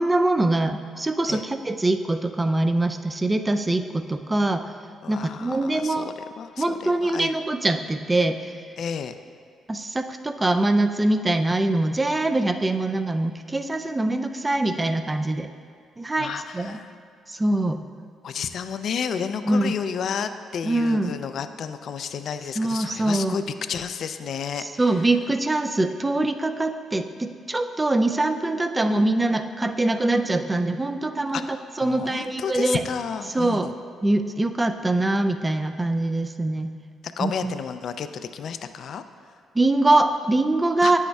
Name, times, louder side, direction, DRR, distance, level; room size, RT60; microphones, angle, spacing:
voice 1, 0.0-4.6 5.1-6.1 6.6-8.6 9.7-15.5 16.0-16.8 17.3-17.8 19.5-19.7 20.6-21.1 22.6-23.4 24.6-32.8 33.3-33.7 34.0-36.7 37.2-37.6 39.5-41.0, right 2 dB, 20° right, 8 dB, 0.3 m, -23 dB
voice 2, 5.0-7.3 8.8-9.2 16.2-16.9 18.2-23.4 23.7-24.6 31.3-33.7 37.2-39.0 40.8-40.9, left 7 dB, 65° left, 10 dB, 0.3 m, -31 dB
9.5 x 6.2 x 2.3 m, 2.1 s
cardioid pair, 90°, 0 cm